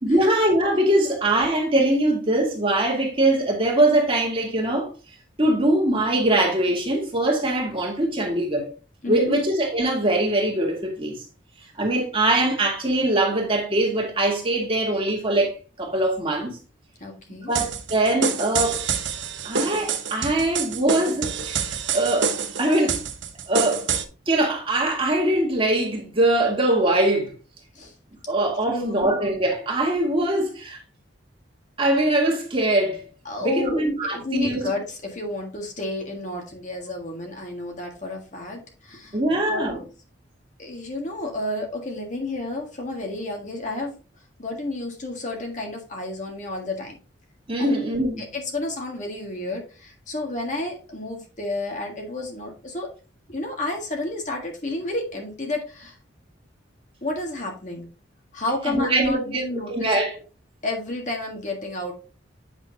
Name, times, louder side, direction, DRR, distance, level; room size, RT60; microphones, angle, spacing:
voice 1, 0.0-4.9 5.4-8.7 9.1-11.2 11.8-16.6 17.5-18.8 19.4-23.0 23.5-23.9 24.3-27.3 28.3-30.8 31.8-33.0 33.4-34.7 39.1-39.8 47.5-48.3 58.7-60.1, right 1 dB, 30° right, 2.0 m, -22 dB
voice 2, 9.0-9.4 17.0-17.5 27.7-27.9 28.7-29.1 33.2-39.9 40.6-43.9 44.4-47.0 47.6-47.8 48.2-52.9 53.3-56.0 57.0-57.9 58.3-60.0 60.6-61.9, left 2 dB, 40° left, 1.6 m, -31 dB
sound 1, 17.6-24.0, right 6 dB, 70° right, 0.9 m, -27 dB
8.0 x 6.2 x 2.7 m
head